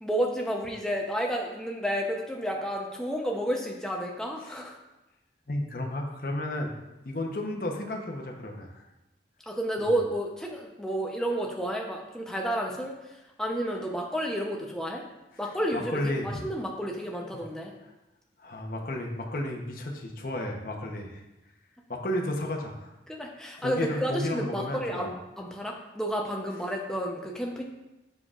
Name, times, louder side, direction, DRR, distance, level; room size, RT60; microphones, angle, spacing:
voice 1, 0.0-4.7 9.5-13.1 13.4-15.0 15.4-17.7 23.1-27.6, equal, 5° left, 0 dB, 0.7 m, -31 dB
voice 2, 5.5-6.7 7.0-8.8 9.8-10.0 15.4-16.4 17.8-17.9 18.4-21.2 21.9-22.9 23.6-25.1, left 1 dB, 50° left, 1 dB, 0.9 m, -33 dB
7.5 x 6.5 x 2.5 m, 0.98 s
head